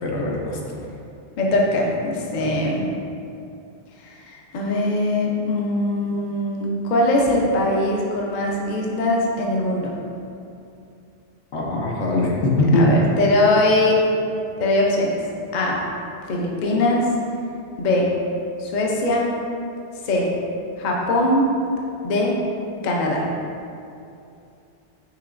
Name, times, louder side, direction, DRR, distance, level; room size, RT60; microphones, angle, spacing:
voice 1, 0.0-0.8 11.5-12.9, left 2 dB, 80° left, -2 dB, 1.0 m, -21 dB
voice 2, 1.4-2.9 4.0-10.0 12.8-14.0 14.6-15.2 15.5-15.8 16.3-17.1 17.8-18.1 18.6-19.3 20.0-20.3 20.8-21.6 22.0-22.4 22.8-23.3, left 1 dB, 50° left, -2 dB, 0.6 m, -21 dB
6.0 x 2.8 x 2.5 m, 2.6 s
omnidirectional pair, 1.2 m